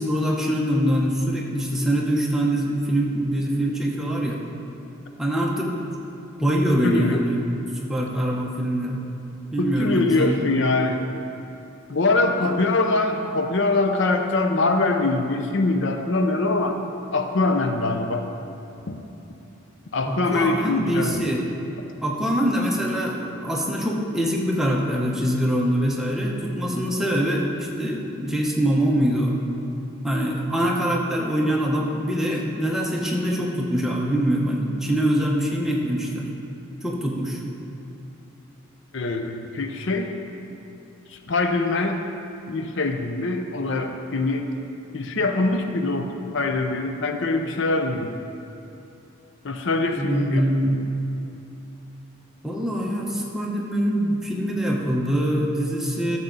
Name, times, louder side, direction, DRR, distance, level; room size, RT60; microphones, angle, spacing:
voice 1, 0.0-4.4 5.2-5.7 6.4-7.4 7.8-9.0 9.5-10.4 12.4-12.5 20.0-21.4 22.0-29.4 30.0-36.3 36.8-37.4 50.0-50.8 52.4-56.2, equal, ahead, -2 dB, 0.9 m, -24 dB
voice 2, 6.8-7.3 9.6-11.0 11.9-16.8 17.1-18.2 18.9-19.0 19.9-21.2 38.9-40.1 41.1-42.1 42.5-44.5 44.9-46.1 46.3-48.1 49.4-50.4, left 3 dB, 60° left, 5 dB, 0.6 m, -23 dB
13.0 x 7.3 x 4.0 m, 2.9 s
head